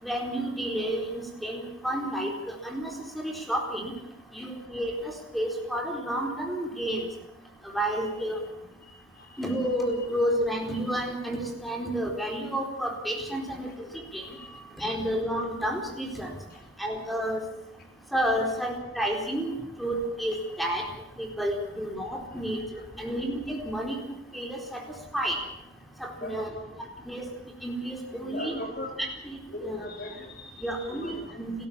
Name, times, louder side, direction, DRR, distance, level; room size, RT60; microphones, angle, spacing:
voice 1, 0.0-3.9 4.3-7.1 7.6-8.4 9.4-13.7 14.1-14.3 14.8-16.3 16.8-17.4 18.1-20.8 21.2-22.6 23.0-24.0 24.3-24.8 25.1-25.4 26.0-26.5 27.1-27.3 27.6-28.5 29.2-29.8 30.6-31.5, equal, ahead, 1 dB, 4.3 m, -30 dB
voice 2, 26.2-26.7 28.1-28.9 29.5-30.5 30.9-31.4, left 1 dB, 50° left, 2 dB, 4.1 m, -38 dB
30.0 x 14.5 x 7.5 m, 0.84 s
head